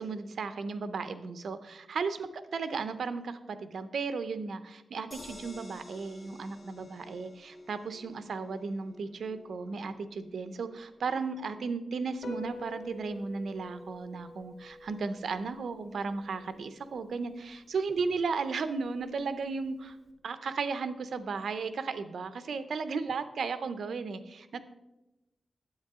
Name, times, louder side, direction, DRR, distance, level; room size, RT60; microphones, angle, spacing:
voice 1, 0.0-20.0 20.2-24.6, right 4 dB, 80° right, 11 dB, 0.6 m, -35 dB
sound 1, 5.1-17.3 17.7-17.8 18.1-18.2, left 1 dB, 30° left, 2.0 m, -54 dB
Piano, 12.1-20.1, left 2 dB, 70° left, 1.5 m, -48 dB
9.6 x 8.1 x 3.6 m, 0.98 s
wide cardioid pair, 95°, 0 cm